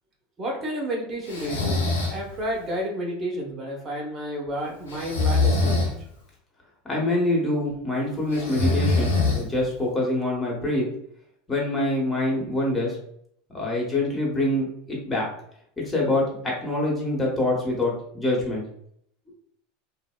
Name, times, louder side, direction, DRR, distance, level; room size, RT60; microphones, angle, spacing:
voice 1, 0.4-1.8 2.1-5.9, right 1 dB, 30° right, -1 dB, 0.8 m, -31 dB
Breathing, 1.3-2.2 4.9-5.9 8.3-9.7, left 3 dB, 90° left, 0.6 m, -23 dB
voice 2, 6.8-10.9 11.5-13.0 13.5-15.3 15.8-18.6, left 1 dB, 20° left, -3 dB, 1.1 m, -25 dB
2.7 x 2.0 x 2.2 m, 0.70 s
hypercardioid pair, 95°, 0 cm